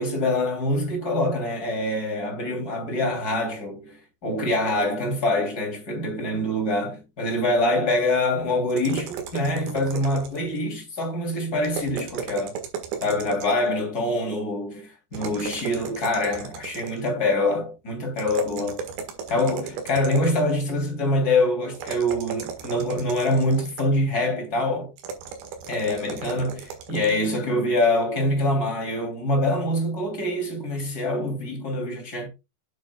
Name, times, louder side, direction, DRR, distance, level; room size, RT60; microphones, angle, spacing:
voice 1, 0.0-12.5 13.0-18.8 19.3-24.9 25.7-32.3, left 1 dB, 25° left, 2.9 m, -25 dB
sound 1, 8.7-10.6 11.6-13.7 15.1-17.1 18.2-20.5 21.7-24.0 25.0-27.2, right 6 dB, 80° right, 3.9 m, -35 dB
9.2 x 7.5 x 2.3 m
omnidirectional pair, 5.0 m